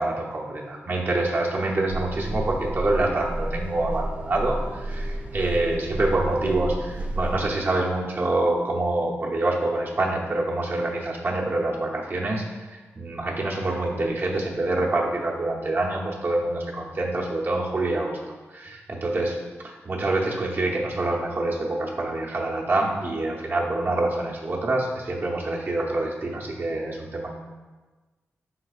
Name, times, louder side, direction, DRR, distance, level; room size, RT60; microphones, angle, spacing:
voice 1, 0.0-27.3, right 2 dB, 45° right, -3 dB, 0.8 m, -26 dB
sound 1, 1.9-7.5, right 1 dB, 30° right, 0.3 m, -31 dB
4.7 x 3.8 x 2.4 m, 1.3 s
cardioid pair, 75°, 5 cm